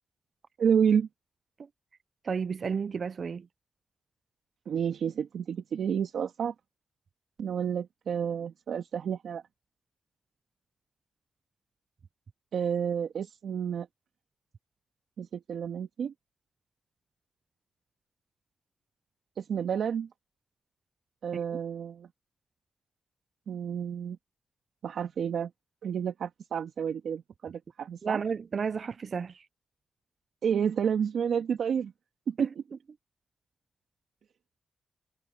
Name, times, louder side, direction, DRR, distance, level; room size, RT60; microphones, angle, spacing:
voice 1, 0.6-1.1 4.7-6.5 7.4-9.4 12.5-13.9 15.2-16.1 19.4-20.1 21.2-22.1 23.5-24.2 24.8-25.5 25.8-28.2 30.4-31.9 32.3-32.5, right 7 dB, 80° right, 2.0 m, -30 dB
voice 2, 2.2-3.5 21.3-21.4 28.0-29.5 32.4-32.5, right 6 dB, 60° right, 0.5 m, -32 dB
cardioid pair, 50°, 0 cm